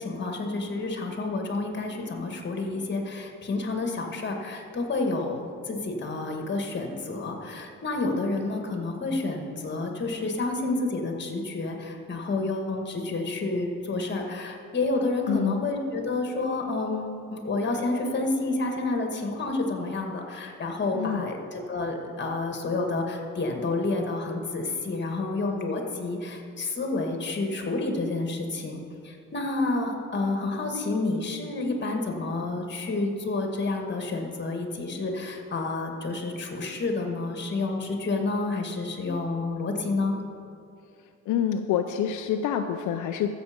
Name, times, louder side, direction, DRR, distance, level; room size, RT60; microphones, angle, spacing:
voice 1, 0.0-40.2, left 3 dB, 35° left, 3 dB, 2.0 m, -29 dB
voice 2, 15.3-15.6 20.9-21.3 41.3-43.3, left 9 dB, 80° left, 6 dB, 0.6 m, -27 dB
14.0 x 7.4 x 5.3 m, 2.4 s
cardioid pair, 90°, 30 cm